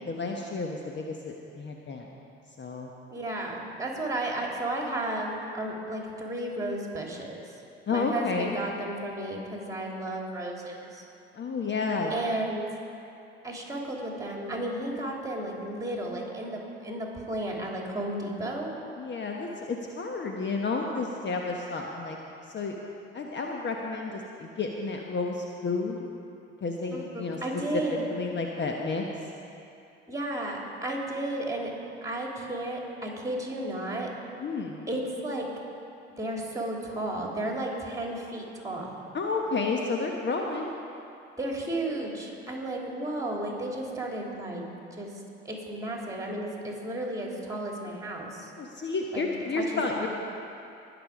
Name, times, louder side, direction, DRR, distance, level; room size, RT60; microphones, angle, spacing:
voice 1, 0.0-2.1 2.6-2.9 7.9-8.6 11.3-12.1 19.0-22.2 22.5-22.8 23.1-26.0 26.6-27.4 27.9-29.0 34.4-34.8 39.1-40.7 48.6-50.1, left 4 dB, 35° left, 1 dB, 1.2 m, -31 dB
voice 2, 3.1-7.4 7.9-11.0 12.1-12.6 13.4-18.7 26.9-28.0 30.1-31.7 32.0-34.1 34.9-35.5 36.2-38.9 41.4-44.6 44.9-45.1 45.4-48.5 49.1-49.3 49.5-49.6 50.0-50.1, right 1 dB, 10° right, -1 dB, 3.1 m, -33 dB
20.5 x 7.1 x 4.9 m, 2.7 s
hypercardioid pair, 55°, 31 cm